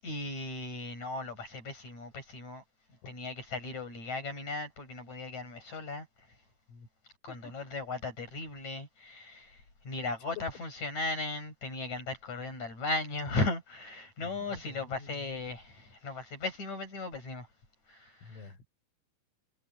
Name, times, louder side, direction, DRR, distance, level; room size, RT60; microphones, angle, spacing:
voice 1, 0.0-2.6 3.1-6.1 7.2-9.6 9.8-17.5 17.9-18.5, left 3 dB, 35° left, 8.5 m, -37 dB
voice 2, 14.2-15.4 18.2-18.7, left 3 dB, 85° left, 8.8 m, -50 dB
omnidirectional pair, 5.9 m